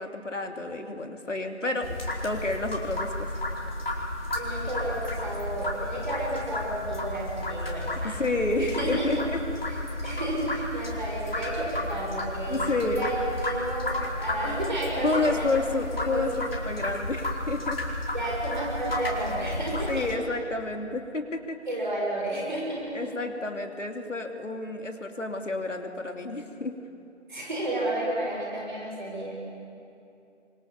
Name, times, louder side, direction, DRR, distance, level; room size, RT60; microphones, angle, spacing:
voice 1, 0.0-1.9 2.2-3.4 8.0-9.4 12.5-13.1 15.0-16.3 16.6-17.8 19.9-21.6 22.9-26.7, left 2 dB, 85° left, 4 dB, 3.1 m, -30 dB
sound 1, 1.8-20.1, left 1 dB, 50° left, 4.8 m, -32 dB
voice 2, 4.3-8.2 8.6-9.2 9.7-9.8 10.0-13.9 14.2-15.5 16.0-16.6 18.1-20.1 21.7-23.1 27.3-29.4, right 1 dB, 40° right, -3 dB, 6.0 m, -32 dB
28.0 x 24.5 x 7.2 m, 2.6 s
figure-of-eight pair, 175°, 36 cm